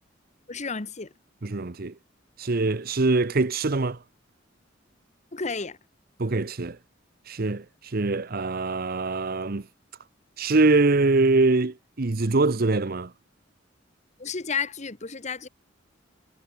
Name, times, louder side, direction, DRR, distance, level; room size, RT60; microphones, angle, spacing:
voice 1, 0.5-1.1 5.3-5.8 14.2-15.5, left 5 dB, 35° left, 1.2 m, -31 dB
voice 2, 1.4-1.9 2.4-4.0 6.2-6.8 7.3-9.6 10.4-13.1, right 3 dB, 50° right, 0.8 m, -23 dB
head